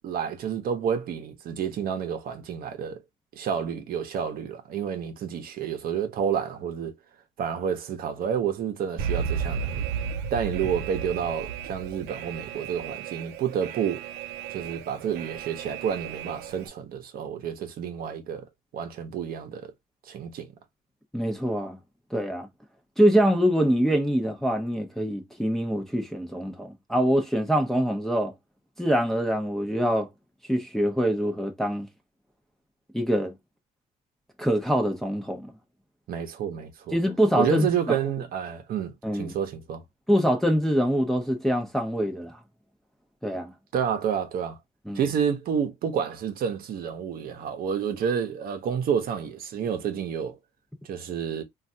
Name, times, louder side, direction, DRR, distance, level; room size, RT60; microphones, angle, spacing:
voice 1, 0.0-3.0 3.3-6.9 7.4-9.9 10.3-14.1 14.5-18.5 18.7-19.7 20.0-20.5 36.1-37.0 37.4-39.8 43.7-44.6 44.9-50.4 50.8-51.4, right 7 dB, 60° right, 0.8 m, -29 dB
Alarm, 9.0-16.7, right 7 dB, 85° right, 0.5 m, -34 dB
voice 2, 21.1-21.8 22.1-22.5 23.0-28.3 28.8-30.1 30.5-31.9 32.9-33.3 34.4-35.5 36.9-38.0 39.0-39.3 40.1-42.4 43.2-43.5 44.9-45.0, equal, ahead, 0.6 m, -24 dB
3.2 x 2.4 x 2.6 m
cardioid pair, 110°, 17 cm